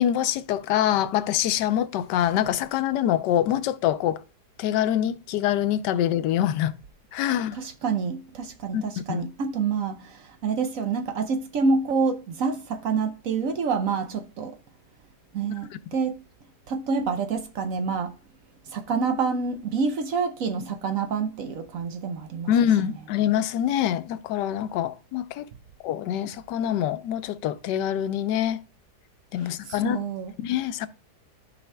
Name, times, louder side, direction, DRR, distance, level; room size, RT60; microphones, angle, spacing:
voice 1, 0.0-4.2 4.6-6.7 7.1-7.6 8.7-8.8 9.1-9.3 22.5-25.5 25.8-28.6 29.3-30.0 30.4-30.9, left 11 dB, 85° left, 1.2 m, -25 dB
voice 2, 7.5-14.6 15.3-16.1 16.7-18.2 18.6-22.5 29.4-30.3, right 5 dB, 65° right, 0.9 m, -27 dB
14.0 x 4.9 x 2.2 m
omnidirectional pair, 1.8 m